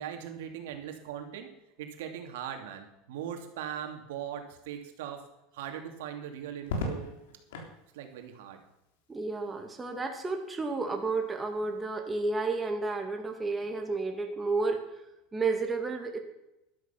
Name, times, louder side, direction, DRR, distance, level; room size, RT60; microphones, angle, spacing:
voice 1, 0.0-1.5 1.8-5.2 5.5-7.1 7.9-8.6, right 9 dB, 85° right, 5 dB, 2.7 m, -40 dB
Crackle, 6.6-7.8 9.4-9.9, left 2 dB, 90° left, 3.6 m, -36 dB
voice 2, 9.1-15.0 15.3-16.2, right 3 dB, 15° right, 3 dB, 2.2 m, -31 dB
13.0 x 12.0 x 5.8 m, 0.89 s
supercardioid pair, 130°, 0 cm